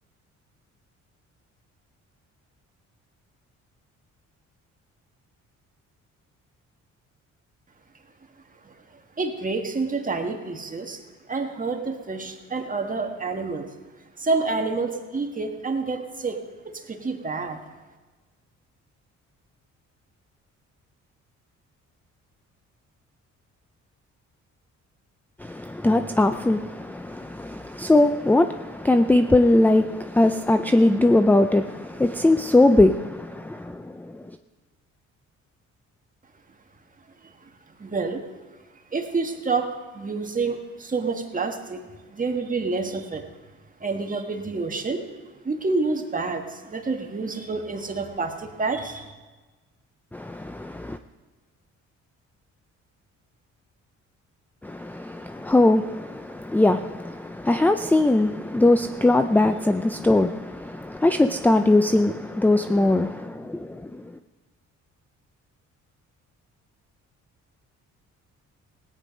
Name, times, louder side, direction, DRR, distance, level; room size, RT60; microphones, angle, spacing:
voice 1, 9.2-11.0 11.3-13.7 14.2-17.6 37.8-38.2 38.9-39.7 39.9-41.8 42.1-43.2 43.8-45.0 45.4-49.1, right 3 dB, 25° right, 1.7 m, -28 dB
voice 2, 25.4-34.1 50.1-51.0 54.6-64.0, left 2 dB, 5° left, 0.4 m, -21 dB
17.5 x 9.5 x 5.2 m
cardioid pair, 90°, 30 cm